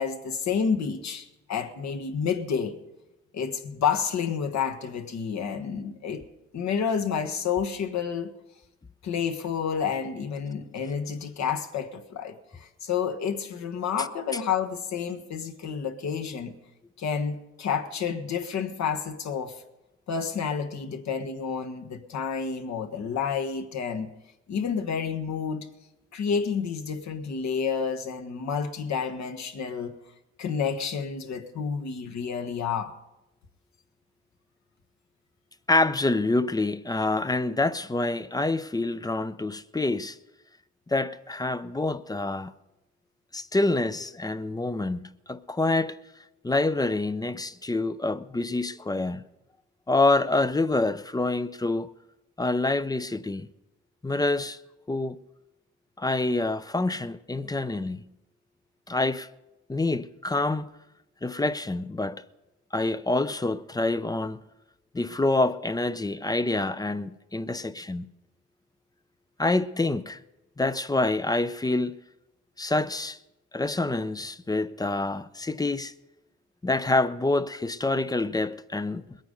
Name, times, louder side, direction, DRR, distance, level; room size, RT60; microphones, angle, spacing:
voice 1, 0.0-2.8 3.3-6.2 6.5-8.3 9.0-16.6 17.0-19.6 20.1-24.1 24.5-25.7 26.1-29.9 30.4-32.9, left 6 dB, 65° left, 1.4 m, -30 dB
voice 2, 35.7-40.2 40.9-42.5 43.3-46.0 46.4-49.2 49.9-51.9 52.4-53.5 54.0-54.6 54.9-55.2 56.0-58.0 58.9-59.3 59.7-60.7 61.2-62.2 62.7-64.4 64.9-68.1 69.4-70.2 70.6-71.9 72.6-73.2 73.5-75.9 76.6-79.2, left 2 dB, 15° left, 0.5 m, -26 dB
21.0 x 9.1 x 5.3 m
cardioid pair, 90°, 30 cm